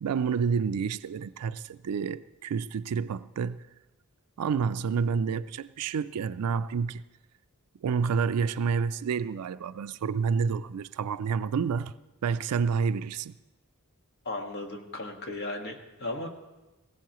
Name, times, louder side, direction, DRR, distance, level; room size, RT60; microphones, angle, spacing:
voice 1, 0.0-3.6 4.4-7.0 7.8-11.9 12.2-13.3, right 6 dB, 90° right, 0.4 m, -29 dB
voice 2, 14.3-16.3, left 2 dB, 50° left, 1.6 m, -36 dB
19.5 x 17.0 x 3.0 m
head